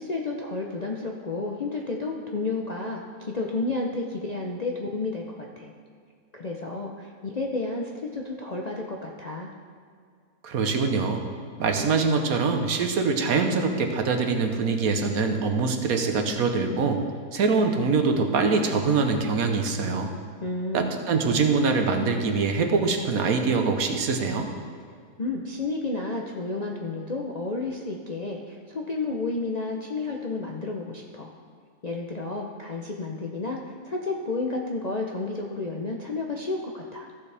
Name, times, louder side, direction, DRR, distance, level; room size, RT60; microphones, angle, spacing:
voice 1, 0.0-5.7 6.3-9.5 20.4-20.9 25.2-31.3 31.8-37.1, left 3 dB, 45° left, -1 dB, 0.5 m, -31 dB
voice 2, 10.4-11.2 11.6-17.0 17.3-20.1 20.7-24.5, right 4 dB, 70° right, 5 dB, 1.4 m, -24 dB
15.0 x 7.1 x 3.4 m, 2.1 s
omnidirectional pair, 1.6 m